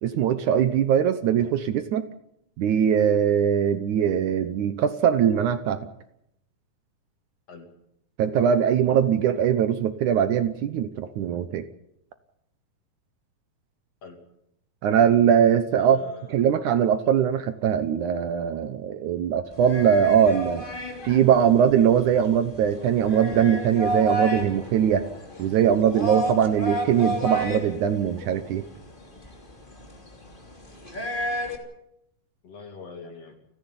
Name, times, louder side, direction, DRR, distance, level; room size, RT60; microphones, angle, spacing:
voice 1, 0.0-2.1 2.6-5.9 8.2-11.7 14.8-16.0 16.3-20.6 21.0-25.1 25.4-28.7, right 8 dB, 70° right, 11 dB, 2.2 m, -21 dB
voice 2, 15.8-16.4 32.4-33.4, left 4 dB, 45° left, 5 dB, 3.6 m, -43 dB
sound 1, 19.5-31.6, equal, 15° left, 2.7 m, -32 dB
29.5 x 10.5 x 9.8 m, 0.80 s
omnidirectional pair, 4.0 m